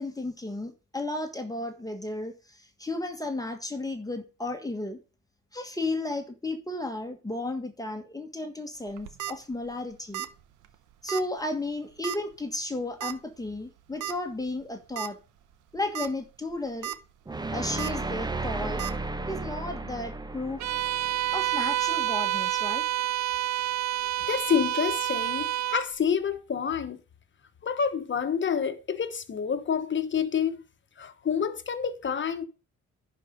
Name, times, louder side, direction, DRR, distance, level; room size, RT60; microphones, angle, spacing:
voice 1, 0.0-5.0 5.5-10.3 11.0-15.2 15.7-16.9 17.5-18.9 19.3-20.7 21.3-22.8, left 2 dB, 10° left, 1.5 m, -33 dB
sound 1, 8.9-9.3 10.1-10.4 10.6-10.7 11.1-11.2 12.0-12.3 13.0-13.1 14.0-14.1 14.6-14.7 15.0-15.1 15.8-16.1 16.5-17.0 17.8-17.9 18.8-18.9, right 12 dB, 85° right, 0.8 m, -34 dB
sound 2, 17.3-22.3, right 3 dB, 15° right, 0.8 m, -34 dB
Bowed string instrument, 20.6-25.9, right 14 dB, 65° right, 0.5 m, -28 dB
voice 2, 24.3-27.0 27.6-30.6 31.0-32.5, left 7 dB, 40° left, 1.3 m, -28 dB
10.5 x 4.9 x 5.2 m
cardioid pair, 90°, 30 cm